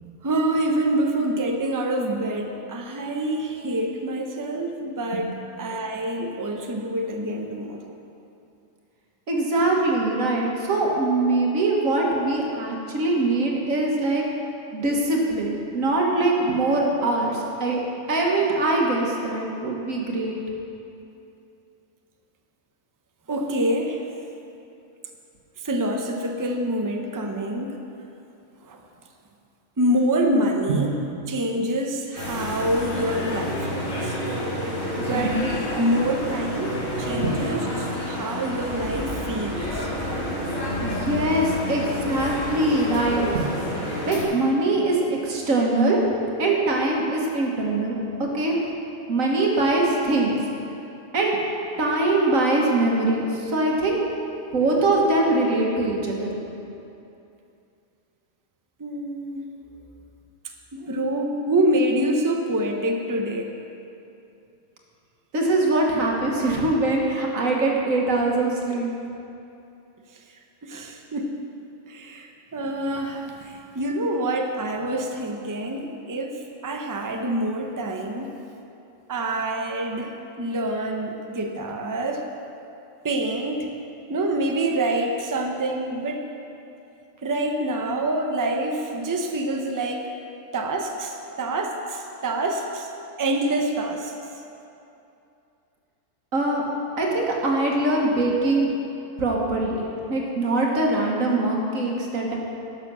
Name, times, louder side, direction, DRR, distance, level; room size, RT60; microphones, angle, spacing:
voice 1, 0.2-7.9 23.3-24.0 25.6-27.8 28.6-28.8 29.8-30.9 31.3-34.2 35.0-35.5 35.7-39.9 58.8-59.5 60.7-63.5 70.1-70.2 70.6-71.4 71.9-78.3 79.1-82.2 83.0-83.7 84.1-86.2 87.2-90.1 90.5-92.9 93.2-94.1, right 1 dB, 20° right, 3 dB, 0.6 m, -26 dB
voice 2, 9.3-14.2 14.7-17.8 18.1-20.4 30.7-30.8 35.1-35.5 37.2-37.3 40.8-43.5 44.1-46.0 46.4-48.6 49.1-50.4 51.1-51.4 51.8-54.0 54.5-56.4 65.3-68.9 96.3-96.6 97.0-98.7 99.2-99.8 100.1-102.4, right 2 dB, 70° right, -1 dB, 1.8 m, -22 dB
sound 1, 32.1-44.2, equal, 50° left, 2.8 m, -29 dB
11.5 x 6.8 x 6.1 m, 2.8 s
omnidirectional pair, 1.4 m